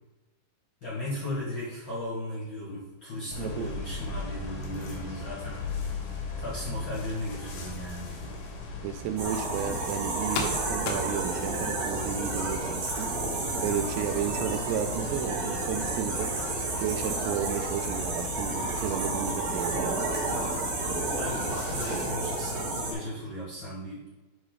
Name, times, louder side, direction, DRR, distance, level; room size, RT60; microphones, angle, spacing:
voice 1, 0.8-5.7 6.4-8.3 14.2-14.4 21.1-24.0, left 1 dB, 35° left, -6 dB, 2.0 m, -36 dB
sound 1, 3.3-22.0, left 3 dB, 65° left, 2.6 m, -39 dB
voice 2, 3.4-3.7 4.7-5.0 8.8-13.1 13.6-16.3 16.8-20.0, right 9 dB, 85° right, 8 dB, 2.5 m, -33 dB
sound 2, 4.6-11.0, left 5 dB, 80° left, 3.2 m, -42 dB
sound 3, 9.2-22.9, right 2 dB, 60° right, 3.2 m, -31 dB
11.0 x 4.3 x 4.0 m, 1.1 s
omnidirectional pair, 4.9 m